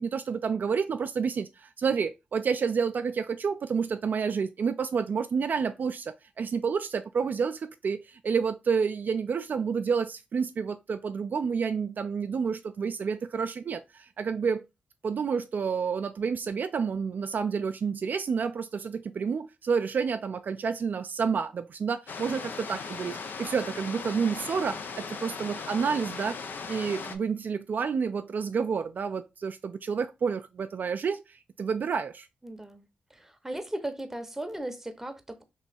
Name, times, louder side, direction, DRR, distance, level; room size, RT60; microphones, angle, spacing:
voice 1, 0.0-14.6 15.0-26.4 26.7-32.3, right 6 dB, 55° right, 0.3 m, -29 dB
sound 1, 22.1-27.2, left 5 dB, 65° left, 0.6 m, -38 dB
voice 2, 32.4-32.9 33.1-35.4, right 1 dB, 10° right, 0.8 m, -37 dB
3.0 x 2.8 x 4.2 m
cardioid pair, 60°, 4 cm